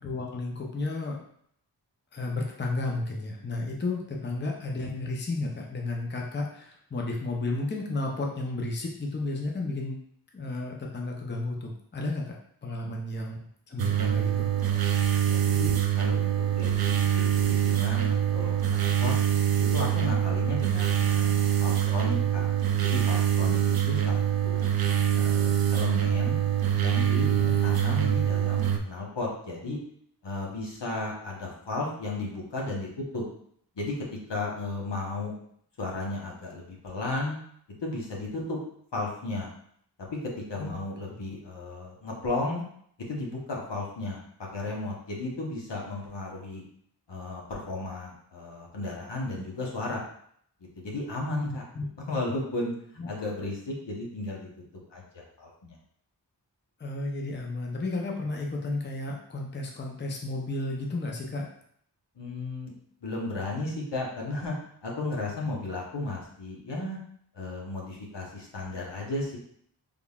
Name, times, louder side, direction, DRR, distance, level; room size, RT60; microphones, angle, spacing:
voice 1, 0.0-1.2 2.1-10.0 10.3-13.4 13.7-14.5 27.3-27.5 40.6-40.8 51.4-51.9 53.0-53.2 56.8-61.5, left 2 dB, 25° left, 0 dB, 0.6 m, -33 dB
sound 1, 13.8-28.8, right 10 dB, 55° right, 0.5 m, -24 dB
voice 2, 15.2-15.7 16.0-19.1 19.7-22.5 22.8-24.7 25.1-26.4 26.8-27.3 27.6-29.8 30.2-32.9 33.1-33.2 33.7-34.0 34.3-35.3 35.8-37.4 37.8-38.6 38.9-39.5 40.0-40.1 40.5-42.6 43.1-44.2 44.5-46.6 47.1-50.0 50.7-51.6 52.1-52.7 53.1-54.5 54.9-55.8 62.2-62.7 63.0-64.5 64.8-67.0 67.3-69.4, left 2 dB, 70° left, -2 dB, 1.0 m, -34 dB
3.7 x 3.4 x 2.3 m, 0.66 s
wide cardioid pair, 45°, 44 cm